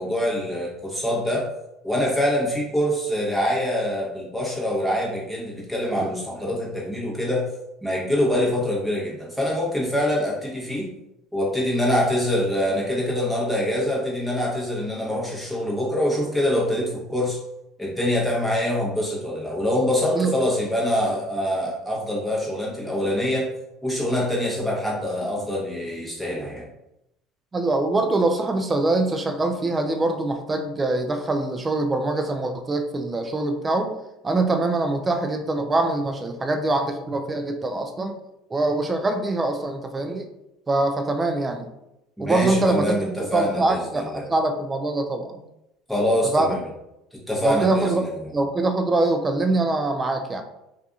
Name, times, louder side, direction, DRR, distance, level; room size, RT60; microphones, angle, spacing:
voice 1, 0.0-1.5 1.8-7.5 7.8-10.9 11.3-17.4 17.8-23.5 23.8-26.7 42.2-44.3 45.9-46.6 47.1-48.1, left 1 dB, ahead, -4 dB, 1.0 m, -25 dB
voice 2, 27.5-33.9 34.2-38.1 38.5-40.3 40.7-41.7 42.2-45.4 46.3-46.5 47.4-48.0 48.3-50.4, right 2 dB, 20° right, 5 dB, 0.4 m, -23 dB
2.6 x 2.5 x 2.4 m, 0.88 s
supercardioid pair, 100°, 0 cm